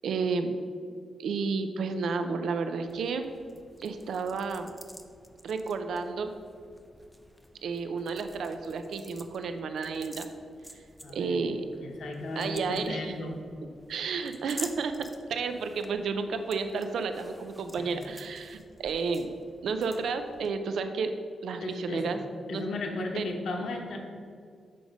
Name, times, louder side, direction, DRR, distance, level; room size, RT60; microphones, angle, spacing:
voice 1, 0.0-0.6 1.2-3.3 3.8-4.7 5.4-6.3 7.6-10.3 11.1-11.7 12.4-13.1 13.9-19.3 19.6-21.1 21.4-22.2 22.5-22.6 23.2-23.3, right 4 dB, 80° right, 8 dB, 0.5 m, -31 dB
sound 1, 2.9-20.5, equal, ahead, 0.4 m, -50 dB
voice 2, 11.0-11.4 11.8-13.4 17.8-17.9 21.6-22.1 22.5-24.0, left 2 dB, 70° left, 2 dB, 1.1 m, -35 dB
6.9 x 5.0 x 5.2 m, 2.2 s
wide cardioid pair, 155°, 0 cm